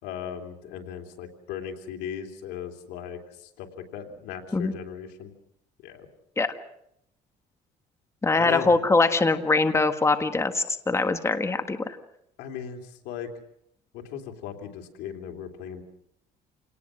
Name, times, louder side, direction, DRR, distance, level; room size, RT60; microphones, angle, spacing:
voice 1, 0.0-3.2 3.6-3.7 3.9-5.3 5.8-6.0 8.4-8.7 12.4-12.8 13.0-13.3 13.9-15.8, left 8 dB, 90° left, 3 dB, 3.2 m, -37 dB
voice 2, 8.2-12.0, left 3 dB, 15° left, 7 dB, 1.6 m, -23 dB
28.0 x 19.0 x 6.3 m, 0.76 s
cardioid pair, 110°, 17 cm